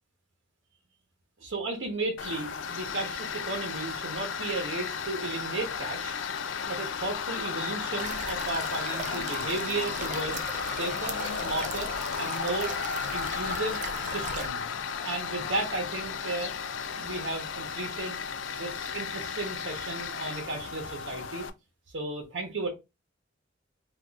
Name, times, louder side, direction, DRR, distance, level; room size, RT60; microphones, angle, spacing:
voice 1, 1.4-6.2 6.7-10.4 10.7-11.9 12.2-12.7 13.1-14.7 15.0-16.5 16.9-18.2 18.6-21.5 21.9-22.7, right 2 dB, 75° right, 0.9 m, -34 dB
Tools, 2.2-21.5, left 6 dB, 75° left, 0.4 m, -34 dB
sound 1, 8.0-14.5, right 5 dB, 40° right, 0.4 m, -39 dB
3.9 x 2.4 x 2.3 m
head